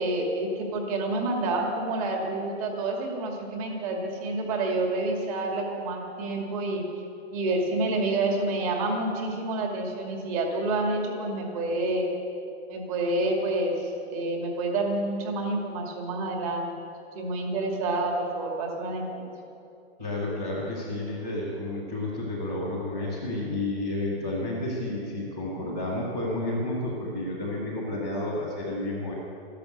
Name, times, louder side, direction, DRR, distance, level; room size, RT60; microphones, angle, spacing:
voice 1, 0.0-6.9 7.3-12.1 12.7-16.7 17.1-19.3, right 2 dB, 30° right, 1 dB, 2.2 m, -28 dB
voice 2, 20.0-29.1, left 1 dB, 5° right, -10 dB, 0.3 m, -31 dB
13.0 x 11.5 x 7.9 m, 2.7 s
hypercardioid pair, 175°, 34 cm